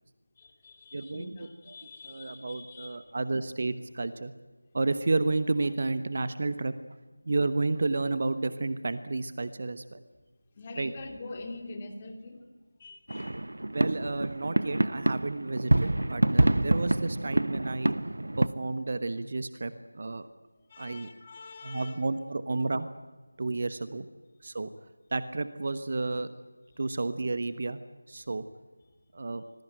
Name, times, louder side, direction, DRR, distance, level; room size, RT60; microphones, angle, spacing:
voice 1, 0.4-3.1 10.5-12.4 12.8-13.4 20.6-22.1 26.7-27.0 29.3-29.4, left 2 dB, 20° left, 4 dB, 2.7 m, -45 dB
voice 2, 0.9-1.3 1.7-1.8 2.1-4.3 4.7-6.7 7.3-10.0 10.8-10.9 13.7-17.9 18.3-20.3 20.8-21.1 21.6-22.9 23.4-24.1 24.4-24.7 25.1-26.3 26.8-27.8 28.1-28.4 29.1-29.4, right 3 dB, 35° right, 12 dB, 1.1 m, -31 dB
sound 1, 13.1-18.5, right 1 dB, 60° right, 1.1 m, -27 dB
25.5 x 20.5 x 9.2 m, 1.3 s
figure-of-eight pair, 165°, 0 cm